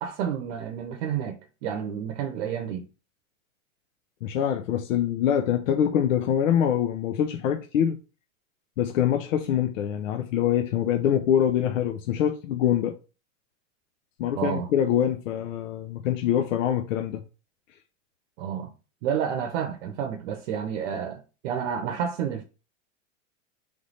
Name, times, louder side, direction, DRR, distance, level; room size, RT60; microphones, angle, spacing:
voice 1, 0.0-2.8 14.3-14.7 18.4-18.7 19.0-22.4, right 8 dB, 65° right, 0.8 m, -30 dB
voice 2, 4.2-8.0 8.8-12.9 14.2-17.2, left 9 dB, 85° left, 0.7 m, -24 dB
3.4 x 3.2 x 4.0 m
supercardioid pair, 135°, 38 cm